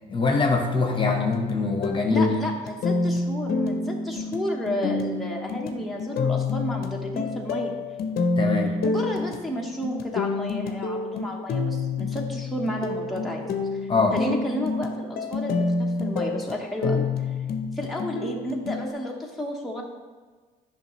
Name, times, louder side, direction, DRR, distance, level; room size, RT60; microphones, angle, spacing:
voice 1, 0.1-2.4 8.4-8.7 13.9-14.2, left 3 dB, 30° left, 2 dB, 1.0 m, -23 dB
sound 1, 1.0-18.9, left 3 dB, 60° left, 0.7 m, -28 dB
voice 2, 2.1-7.7 8.8-13.4 13.7-17.4 17.7-19.8, equal, ahead, -2 dB, 1.1 m, -32 dB
8.8 x 5.9 x 3.1 m, 1.4 s
cardioid pair, 95°, 18 cm